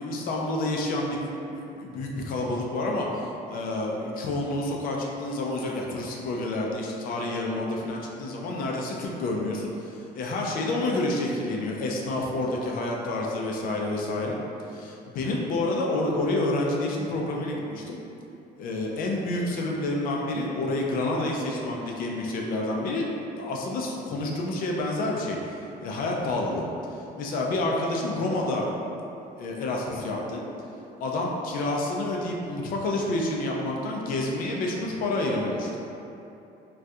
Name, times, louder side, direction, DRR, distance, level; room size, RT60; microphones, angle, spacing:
voice 1, 0.0-14.4 14.7-18.0 18.6-23.1 23.4-25.4 25.8-26.7 27.2-28.7 29.4-30.4 31.0-35.7, left 2 dB, 55° left, -1 dB, 0.5 m, -29 dB
3.4 x 2.3 x 2.6 m, 2.8 s
cardioid pair, 145°, 17 cm